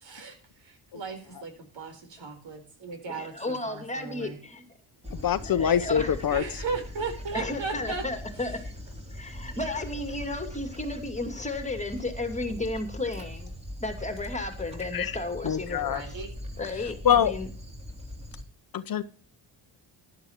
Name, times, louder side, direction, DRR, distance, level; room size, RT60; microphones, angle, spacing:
voice 1, 0.6-4.4 6.3-8.0 15.9-16.3, right 4 dB, 70° right, 6 dB, 4.3 m, -36 dB
voice 2, 3.1-4.7 5.5-6.2 7.3-8.6 9.1-13.5 13.8-16.2 16.6-17.5, left 2 dB, 15° left, 7 dB, 2.4 m, -33 dB
Dog, 5.0-18.4, left 1 dB, 15° right, 3.3 m, -41 dB
voice 3, 5.2-6.4 14.9-15.1 15.4-16.0 17.0-17.3 18.7-19.0, left 9 dB, 50° left, 14 dB, 0.8 m, -24 dB
14.5 x 11.5 x 3.0 m, 0.39 s
cardioid pair, 95°, 47 cm